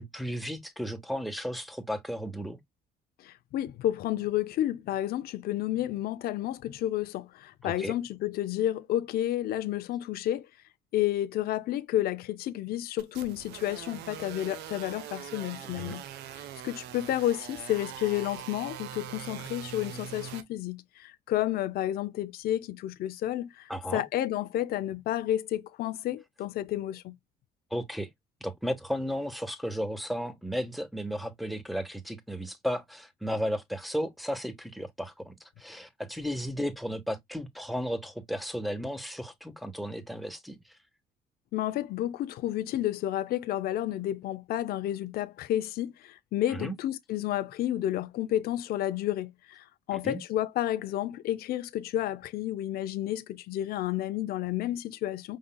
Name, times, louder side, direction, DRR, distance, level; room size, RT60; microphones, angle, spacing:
voice 1, 0.0-2.6 7.6-7.9 15.6-16.0 23.7-24.0 27.7-28.1 28.4-40.6 46.5-46.7 49.9-50.2, equal, ahead, 1.2 m, -34 dB
voice 2, 3.2-10.5 10.9-16.0 16.4-27.1 41.5-55.4, left 13 dB, 65° left, 0.6 m, -31 dB
sound 1, 13.0-20.4, right 11 dB, 85° right, 1.0 m, -42 dB
5.4 x 3.7 x 2.2 m
cardioid pair, 110°, 17 cm